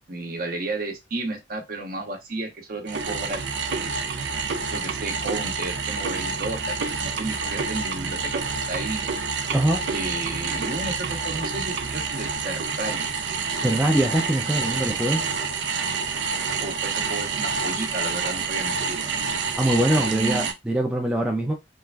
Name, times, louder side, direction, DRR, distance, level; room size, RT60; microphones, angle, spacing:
voice 1, 0.1-3.4 3.7-4.1 4.7-9.0 9.9-13.1 16.6-19.1 19.9-20.5, right 2 dB, 55° right, 0.8 m, -33 dB
sound 1, 2.9-20.5, right 5 dB, 85° right, 0.5 m, -28 dB
voice 2, 9.5-9.8 13.6-15.2 19.5-21.5, right 1 dB, 5° right, 0.4 m, -23 dB
3.1 x 2.4 x 2.3 m
head